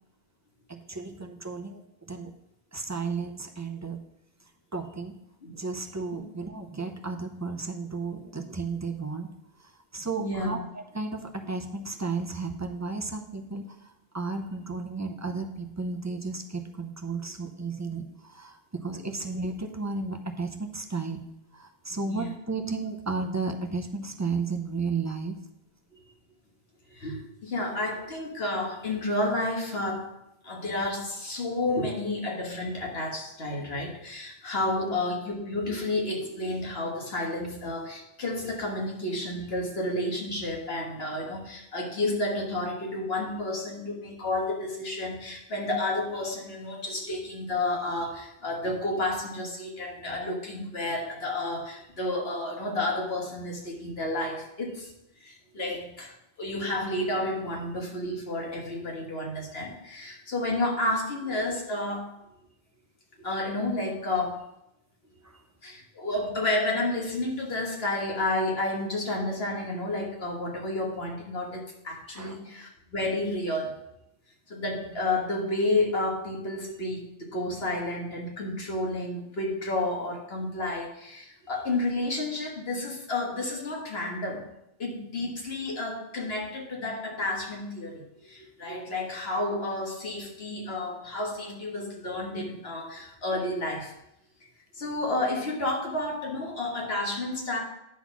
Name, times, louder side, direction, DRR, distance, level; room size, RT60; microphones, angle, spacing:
voice 1, 0.7-2.3 2.7-4.0 4.7-5.2 5.5-9.3 9.6-21.2 21.5-25.4 65.2-65.4 72.1-72.4, right 4 dB, 20° right, 4 dB, 0.5 m, -33 dB
voice 2, 10.2-10.6 22.0-22.3 26.9-30.1 30.4-54.9 55.2-56.1 56.4-62.1 63.2-64.4 65.6-73.8 74.5-84.5 84.8-93.9 94.7-97.6, left 2 dB, 75° left, 0 dB, 1.8 m, -31 dB
9.5 x 4.0 x 6.0 m, 0.81 s
omnidirectional pair, 1.0 m